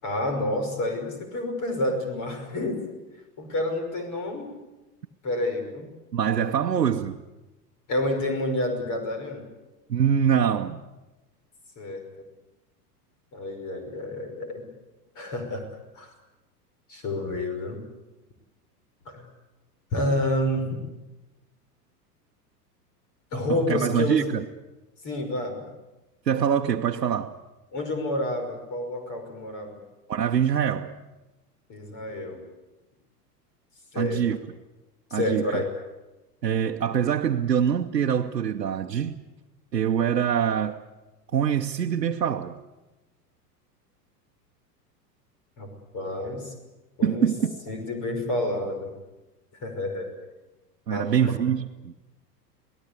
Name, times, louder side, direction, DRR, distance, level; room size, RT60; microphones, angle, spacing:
voice 1, 0.0-2.8 3.4-4.5 5.2-5.9 7.9-9.5 11.8-12.0 13.3-14.7 15.2-15.7 15.9-16.1 16.9-17.8 19.1-19.3 19.9-20.8 23.3-24.3 25.0-25.6 27.7-29.8 31.7-32.4 33.9-34.2 35.1-35.6 45.6-45.7 45.9-46.5 47.0-48.9 49.6-50.1 50.9-51.3, left 1 dB, 40° left, 5.6 m, -29 dB
voice 2, 6.1-7.2 9.9-10.8 23.5-24.4 26.3-27.4 30.1-31.0 34.0-34.4 35.1-35.4 36.4-39.2 39.7-40.8 41.3-42.6 47.0-47.5 50.9-51.9, right 8 dB, 85° right, 1.1 m, -24 dB
27.5 x 18.5 x 8.3 m
figure-of-eight pair, 90°, 48 cm